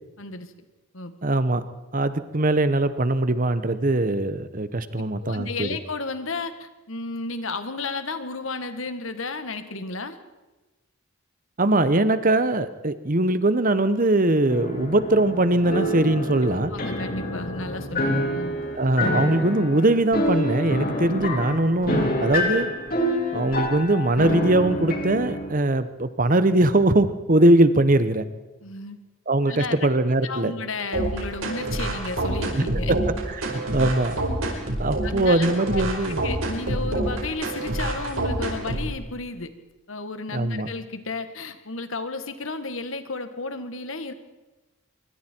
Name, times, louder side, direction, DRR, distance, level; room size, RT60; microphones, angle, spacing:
voice 1, 0.2-0.5 0.9-1.1 5.2-10.2 16.7-18.6 28.6-29.0 29.5-29.9 30.2-33.0 33.8-33.9 35.0-35.5 35.7-35.8 36.2-39.5 39.9-44.1, left 3 dB, 70° left, 10 dB, 1.7 m, -33 dB
voice 2, 1.2-1.6 1.9-5.8 11.6-16.7 18.0-18.2 18.7-22.7 23.3-28.2 29.3-30.5 32.5-34.2 34.8-36.2 40.3-40.7, right 2 dB, 40° right, 12 dB, 1.1 m, -21 dB
sound 1, 14.5-25.5, left 1 dB, 45° left, 4.3 m, -27 dB
sound 2, 30.9-38.9, right 1 dB, 75° right, 4.9 m, -27 dB
25.5 x 23.0 x 4.6 m, 1.1 s
head